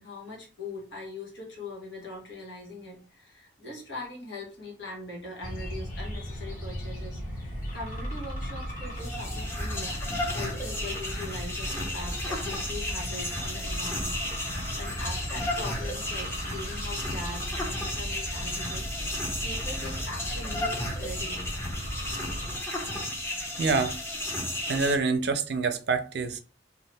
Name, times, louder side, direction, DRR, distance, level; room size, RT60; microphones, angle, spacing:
voice 1, 0.0-10.0 10.3-14.5 14.7-18.9 19.4-21.5, left 2 dB, 80° left, 1.4 m, -41 dB
sound 1, 5.4-22.6, equal, 45° left, 1.5 m, -36 dB
sound 2, 8.8-25.0, left 1 dB, 15° left, 0.6 m, -34 dB
voice 2, 23.6-23.9 24.7-26.4, right 4 dB, 65° right, 0.4 m, -26 dB
2.7 x 2.4 x 3.3 m
head